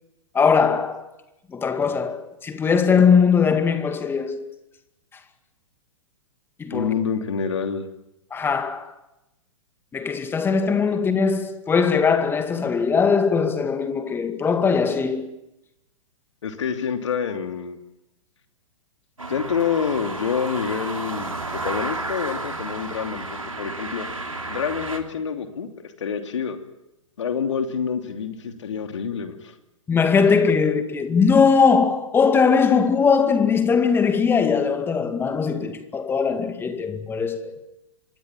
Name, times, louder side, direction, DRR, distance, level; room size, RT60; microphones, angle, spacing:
voice 1, 0.3-1.1 1.5-4.5 6.6-6.9 8.3-8.9 9.9-15.3 29.9-37.6, left 5 dB, 15° left, 2.1 m, -20 dB
voice 2, 6.7-7.9 10.9-11.0 16.4-17.8 19.3-24.1 24.5-25.7 26.0-26.6 27.2-29.6, left 6 dB, 60° left, 2.9 m, -27 dB
sound 1, 19.2-25.0, right 2 dB, 85° right, 3.3 m, -32 dB
26.0 x 22.0 x 7.5 m
figure-of-eight pair, 110°, 17 cm